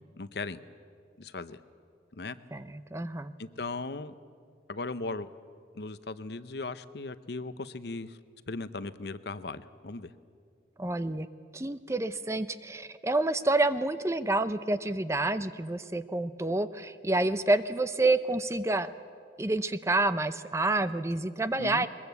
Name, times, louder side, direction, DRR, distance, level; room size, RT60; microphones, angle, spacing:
voice 1, 0.2-0.6 1.2-1.6 2.1-2.4 3.4-4.1 4.7-5.3 5.7-8.2 8.5-10.1 21.6-21.9, left 3 dB, 65° left, 13 dB, 0.8 m, -37 dB
voice 2, 2.5-3.3 10.8-11.3 11.5-18.9 19.4-21.9, right 2 dB, 15° right, 12 dB, 0.6 m, -28 dB
21.5 x 21.5 x 8.2 m, 2.2 s
head